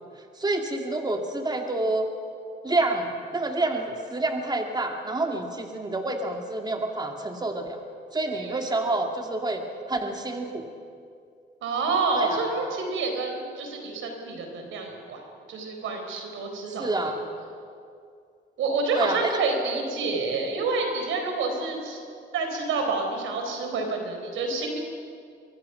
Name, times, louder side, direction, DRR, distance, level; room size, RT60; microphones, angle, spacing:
voice 1, 0.4-2.1 2.6-7.8 8.1-9.6 9.9-10.6 12.1-12.4 16.8-17.2 19.0-19.4 19.7-19.8, right 2 dB, 20° right, 3 dB, 2.4 m, -28 dB
voice 2, 8.3-8.7 11.6-15.2 15.5-17.2 18.6-22.0 22.3-24.8, right 3 dB, 80° right, 3 dB, 4.3 m, -28 dB
23.5 x 23.0 x 5.9 m, 2.4 s
cardioid pair, 90°, 20 cm